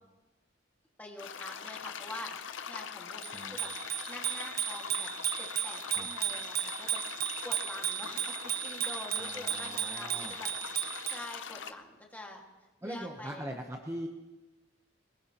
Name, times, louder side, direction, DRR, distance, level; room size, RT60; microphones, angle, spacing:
voice 1, 1.0-3.7 4.1-5.1 5.4-7.0 7.4-10.5 11.0-12.4 12.8-13.4, left 1 dB, 10° left, -1 dB, 1.9 m, -46 dB
sound 1, 1.2-11.7, left 7 dB, 75° left, 0.7 m, -42 dB
Bicycle bell, 3.2-11.3, right 11 dB, 50° right, 0.8 m, -35 dB
voice 2, 9.2-10.3 12.8-14.1, equal, 15° right, 2 dB, 0.9 m, -41 dB
21.0 x 20.0 x 2.9 m, 1.2 s
head